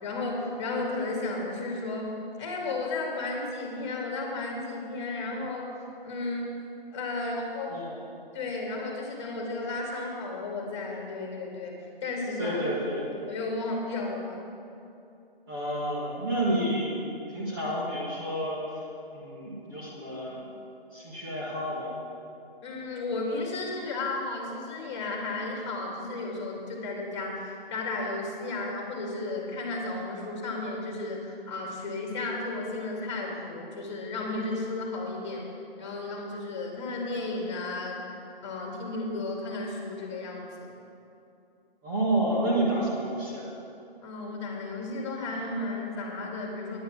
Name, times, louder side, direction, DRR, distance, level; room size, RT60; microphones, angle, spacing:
voice 1, 0.0-5.7 6.0-6.5 6.9-7.7 8.3-12.6 13.3-14.4 22.6-35.5 35.8-38.0 38.4-40.7 44.0-46.8, left 2 dB, 30° left, 0 dB, 2.1 m, -33 dB
voice 2, 12.4-13.1 15.5-17.0 17.3-18.8 19.1-20.5 20.9-22.0 41.8-43.5, right 1 dB, 20° right, -6 dB, 1.5 m, -30 dB
9.8 x 9.4 x 6.0 m, 2.7 s
hypercardioid pair, 160°, 29 cm